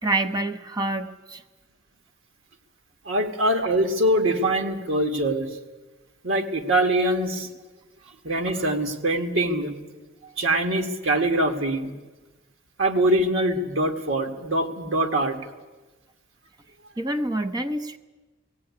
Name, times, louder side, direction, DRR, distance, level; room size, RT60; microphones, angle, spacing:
voice 1, 0.0-1.4 17.0-18.0, right 2 dB, 20° right, 7 dB, 0.7 m, -27 dB
voice 2, 3.1-5.5 6.2-7.5 8.2-9.7 10.4-11.9 12.8-15.4, right 1 dB, 80° right, 4 dB, 2.0 m, -23 dB
17.0 x 16.5 x 9.7 m, 1.2 s
head